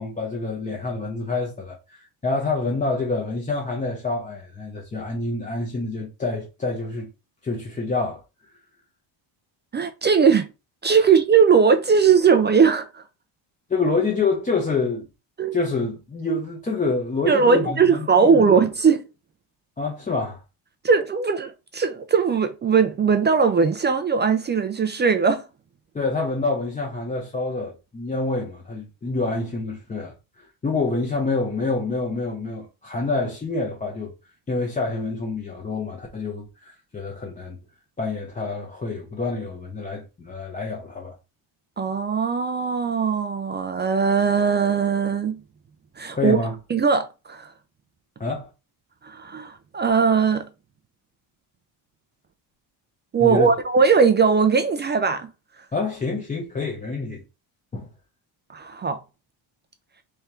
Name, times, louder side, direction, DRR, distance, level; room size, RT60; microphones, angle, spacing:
voice 1, 0.0-7.1 7.4-8.2 13.7-15.1 15.5-18.0 18.3-18.4 19.8-20.4 25.9-34.1 34.5-37.6 38.0-41.1 46.1-46.5 48.2-48.5 53.2-53.5 55.7-57.2 57.7-57.9, left 3 dB, 15° left, 0.8 m, -27 dB
voice 2, 9.7-10.5 10.8-13.0 15.4-15.6 17.3-19.0 20.8-25.4 41.8-45.4 46.0-46.4 46.7-47.5 49.0-50.5 53.1-55.3 58.5-59.0, right 5 dB, 25° right, 0.3 m, -19 dB
3.5 x 3.3 x 4.3 m
cardioid pair, 155°, 46 cm